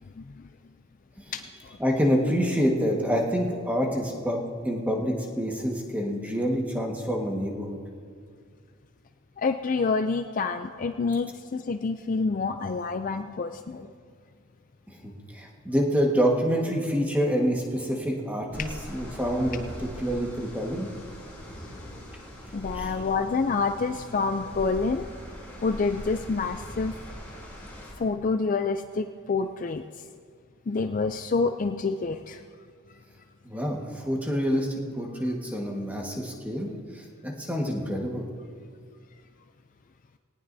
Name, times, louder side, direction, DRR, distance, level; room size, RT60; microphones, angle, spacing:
voice 1, 0.2-0.5 1.3-1.8 9.4-13.9 22.5-25.0 25.6-27.0 28.0-29.8 30.7-32.4, left 4 dB, 35° left, 8 dB, 0.3 m, -28 dB
voice 2, 1.8-7.8 14.9-20.9 22.7-22.9 33.4-38.3, equal, 5° right, -1 dB, 1.5 m, -27 dB
sound 1, 18.5-27.9, equal, 10° left, 2.9 m, -41 dB
18.5 x 18.5 x 2.7 m, 2.1 s
head